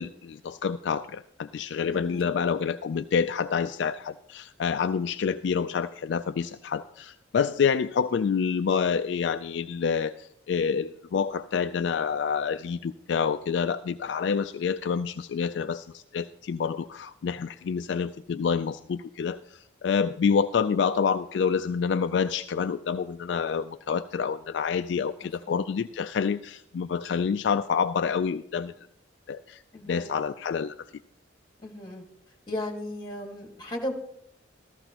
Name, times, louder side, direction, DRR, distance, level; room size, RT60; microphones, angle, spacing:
voice 1, 0.0-28.7 29.3-30.9, left 6 dB, 60° left, 9 dB, 0.3 m, -28 dB
voice 2, 1.9-2.3 25.2-25.7 29.7-30.1 31.6-32.0 32.5-33.9, left 1 dB, 20° left, 1 dB, 1.8 m, -36 dB
14.0 x 14.0 x 3.0 m, 0.72 s
head